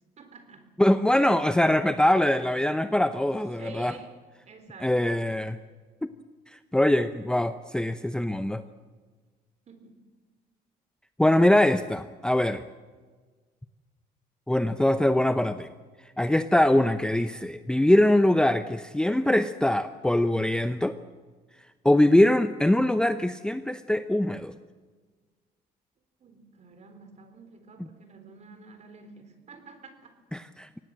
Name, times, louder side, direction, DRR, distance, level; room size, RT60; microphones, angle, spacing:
voice 1, 0.2-0.7 3.6-5.2 9.7-10.1 26.2-30.2, right 4 dB, 40° right, 9 dB, 3.9 m, -49 dB
voice 2, 0.8-3.9 4.8-5.6 6.0-6.1 6.7-8.6 11.2-12.6 14.5-15.7 16.2-21.0 21.8-24.5 30.3-30.8, left 1 dB, 5° left, 11 dB, 0.7 m, -23 dB
24.5 x 18.0 x 7.6 m, 1.4 s
cardioid pair, 110°, 17 cm